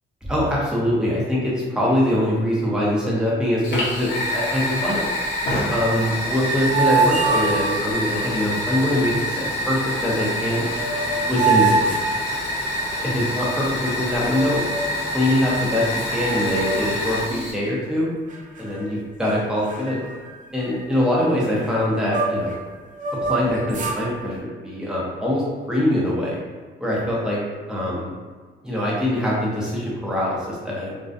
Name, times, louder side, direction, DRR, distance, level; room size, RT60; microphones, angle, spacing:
voice 1, 0.3-5.0 5.7-10.7 11.3-11.9 13.1-14.7 15.1-18.1 18.6-20.0 20.5-22.6 23.2-26.4 26.8-27.4 27.7-28.1 28.6-31.0, left 1 dB, 5° right, -6 dB, 0.8 m, -23 dB
Fire, 3.6-17.5, left 1 dB, 60° left, 0.9 m, -27 dB
sound 1, 6.2-8.1 10.3-10.4 10.6-12.9 14.2-15.0 15.6-15.7 16.0-17.1 17.4-17.7 18.3-18.9 19.2-19.4 19.7-22.5 22.9-24.0, right 4 dB, 40° right, 0.5 m, -25 dB
2.3 x 2.2 x 2.6 m, 1.5 s
cardioid pair, 90°, 20 cm